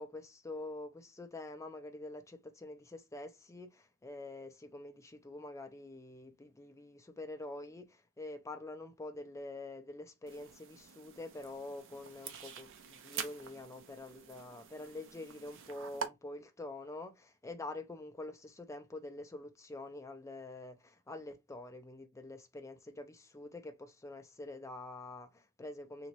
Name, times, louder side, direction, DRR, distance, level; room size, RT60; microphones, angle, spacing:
voice 1, 0.0-26.1, left 2 dB, 15° left, 0.5 m, -46 dB
sound 1, 10.3-16.1, right 7 dB, 60° right, 0.6 m, -46 dB
3.0 x 3.0 x 2.6 m
head